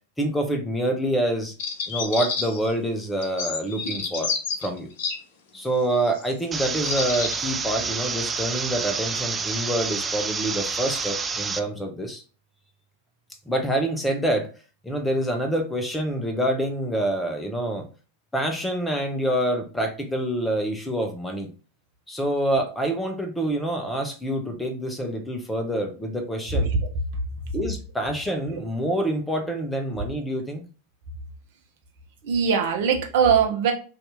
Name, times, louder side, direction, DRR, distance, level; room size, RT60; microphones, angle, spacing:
voice 1, 0.2-1.5 1.9-4.3 4.6-4.9 5.5-12.2 13.5-14.5 14.8-17.9 18.3-21.5 22.1-26.7 27.5-30.6, right 1 dB, 5° left, 5 dB, 0.7 m, -26 dB
sound 1, 1.6-2.7 3.2-5.2 6.0-6.2 6.8-7.4, left 5 dB, 50° left, 0.7 m, -29 dB
sound 2, 6.5-11.6, right 5 dB, 15° right, 0.3 m, -29 dB
voice 2, 26.5-26.9 28.5-28.6 32.2-33.7, right 6 dB, 50° right, 2 dB, 0.8 m, -21 dB
2.7 x 2.7 x 3.4 m, 0.36 s
figure-of-eight pair, 90°, 0 cm